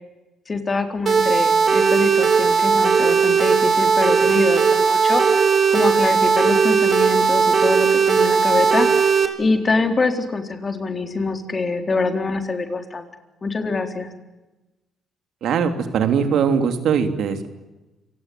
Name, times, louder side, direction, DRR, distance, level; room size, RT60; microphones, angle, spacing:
voice 1, 0.5-5.2 5.7-9.1 9.4-13.1 13.4-14.1, left 3 dB, 30° left, 6 dB, 4.0 m, -24 dB
sound 1, 1.1-9.3, right 6 dB, 50° right, 3.3 m, -17 dB
voice 2, 15.4-17.5, right 7 dB, 70° right, 8 dB, 3.0 m, -20 dB
28.5 x 18.0 x 9.4 m, 1.1 s
cardioid pair, 90°, 0 cm